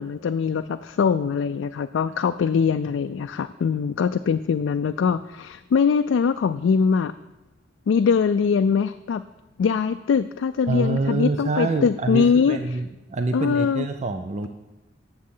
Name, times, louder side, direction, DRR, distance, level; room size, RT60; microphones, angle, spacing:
voice 1, 0.0-7.1 7.9-9.2 9.6-12.6 13.3-13.9, left 6 dB, 85° left, 9 dB, 0.3 m, -22 dB
voice 2, 10.7-14.5, right 3 dB, 40° right, 7 dB, 0.4 m, -26 dB
8.6 x 7.2 x 5.5 m, 1.0 s
head